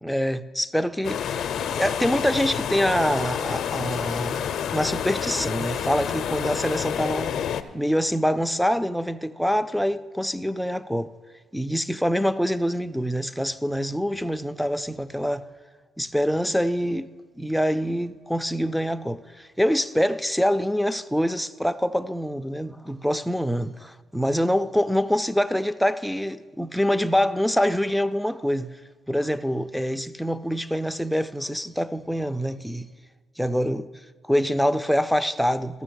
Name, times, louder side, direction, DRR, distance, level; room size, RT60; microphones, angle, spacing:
voice 1, 0.0-1.5 1.8-4.4 4.7-7.4 7.7-11.1 11.5-15.5 16.0-23.7 24.1-28.7 29.1-32.9 33.4-33.9 34.2-35.8, equal, ahead, 0.4 m, -25 dB
sound 1, 1.0-7.6, left 8 dB, 70° left, 0.5 m, -28 dB
13.5 x 6.2 x 6.3 m
cardioid pair, 90°, 0 cm